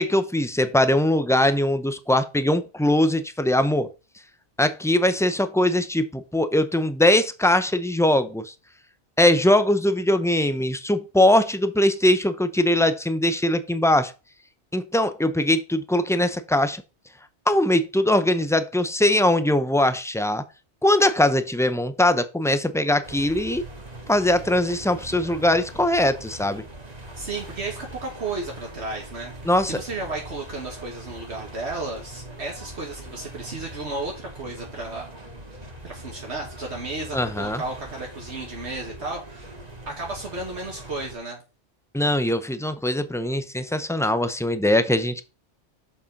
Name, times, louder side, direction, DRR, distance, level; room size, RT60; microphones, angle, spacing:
voice 1, 0.0-3.9 4.6-8.5 9.2-14.1 14.7-16.8 17.5-20.4 20.8-23.6 24.1-26.6 29.5-29.8 37.1-37.6 41.9-45.2, left 1 dB, 5° left, 0.4 m, -21 dB
sound 1, 23.0-41.2, right 1 dB, 35° right, 1.9 m, -41 dB
voice 2, 27.2-29.3 29.6-35.1 35.8-39.6 39.9-41.4, right 3 dB, 65° right, 1.8 m, -33 dB
7.1 x 5.5 x 5.3 m
omnidirectional pair, 1.2 m